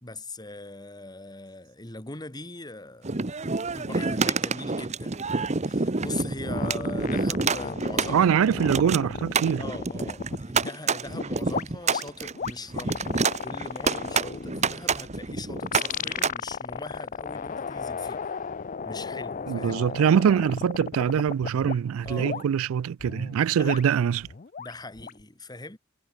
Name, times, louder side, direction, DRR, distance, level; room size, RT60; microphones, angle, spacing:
voice 1, 0.0-3.4 3.7-8.4 9.6-18.3 18.8-19.8 22.0-22.5 23.6-23.8 24.6-25.8, left 2 dB, 20° left, 2.4 m, -41 dB
sound 1, 3.0-16.3, right 4 dB, 35° right, 1.0 m, -28 dB
sound 2, 6.4-10.7 11.1-21.8 22.1-22.4 23.0-25.2, left 6 dB, 40° left, 0.5 m, -35 dB
voice 2, 8.1-9.6 19.5-24.3, right 8 dB, 80° right, 0.3 m, -23 dB
head